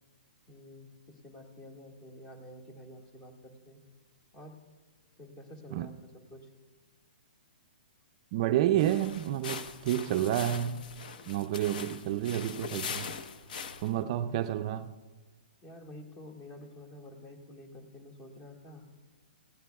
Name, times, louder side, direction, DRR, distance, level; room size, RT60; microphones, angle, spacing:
voice 1, 0.5-3.8 4.3-4.6 5.2-6.5 14.2-14.4 15.6-18.9, left 1 dB, 25° left, 1.9 m, -49 dB
voice 2, 8.3-10.9 11.3-13.1 13.8-14.9, right 12 dB, 35° right, 0.4 m, -29 dB
sound 1, 8.8-14.0, left 6 dB, 60° left, 1.0 m, -41 dB
18.0 x 16.0 x 2.3 m
hypercardioid pair, 155°, 5 cm